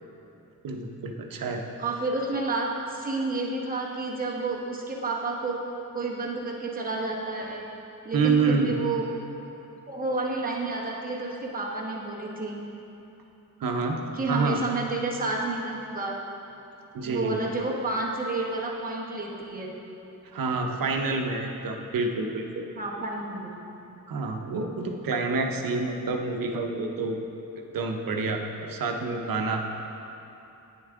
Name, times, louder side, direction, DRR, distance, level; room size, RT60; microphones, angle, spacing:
voice 1, 0.6-1.6 8.1-8.7 13.6-14.6 16.9-17.4 20.3-22.7 24.1-27.2 27.7-29.6, right 3 dB, 75° right, 3 dB, 0.8 m, -28 dB
voice 2, 1.8-5.6 5.9-7.7 8.0-9.1 9.9-12.6 14.1-16.2 17.0-19.8 22.7-23.5, right 3 dB, 25° right, -3 dB, 1.1 m, -30 dB
9.3 x 7.1 x 3.6 m, 2.9 s
wide cardioid pair, 125°, 34 cm